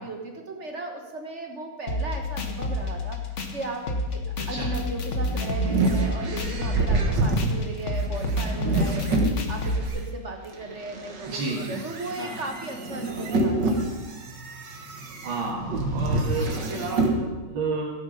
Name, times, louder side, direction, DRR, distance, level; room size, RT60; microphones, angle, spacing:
voice 1, 0.0-14.0, right 2 dB, 40° right, 3 dB, 1.3 m, -36 dB
sound 1, 1.9-9.9, left 1 dB, 45° left, 1.3 m, -29 dB
sound 2, 4.9-10.0 10.5-17.2, right 2 dB, 60° right, 2.1 m, -27 dB
voice 2, 11.3-11.8 12.2-12.4 15.2-17.9, right 3 dB, 80° right, -4 dB, 2.5 m, -31 dB
16.5 x 8.9 x 5.4 m, 1.2 s
omnidirectional pair, 2.2 m